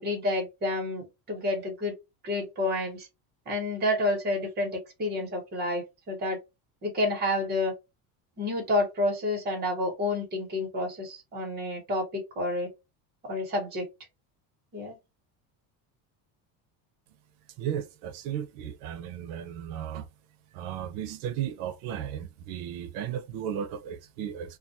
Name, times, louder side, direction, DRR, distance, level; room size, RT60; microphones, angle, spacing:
voice 1, 0.0-1.9 2.2-3.1 3.5-6.4 6.8-7.7 8.4-12.7 13.2-13.9 14.7-15.0, left 1 dB, 25° right, 1.1 m, -29 dB
voice 2, 17.6-20.1 20.5-24.6, right 9 dB, 85° right, 0.6 m, -35 dB
2.4 x 2.3 x 2.6 m
cardioid pair, 170°, 42 cm